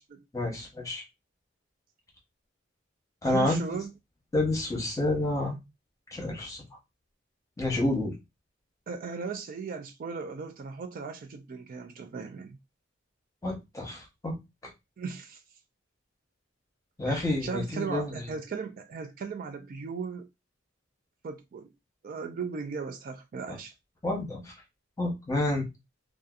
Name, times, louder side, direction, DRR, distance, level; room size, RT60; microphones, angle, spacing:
voice 1, 0.3-1.0 3.2-3.8 4.3-5.6 6.1-6.6 7.6-8.1 13.4-14.4 17.0-18.1 23.5-23.6 24.0-24.5 25.0-25.7, left 1 dB, 15° left, 0.9 m, -29 dB
voice 2, 3.3-3.9 8.9-12.6 15.0-15.4 17.1-20.3 21.2-21.7 22.0-23.7, right 5 dB, 45° right, 0.3 m, -37 dB
2.7 x 2.3 x 2.4 m
head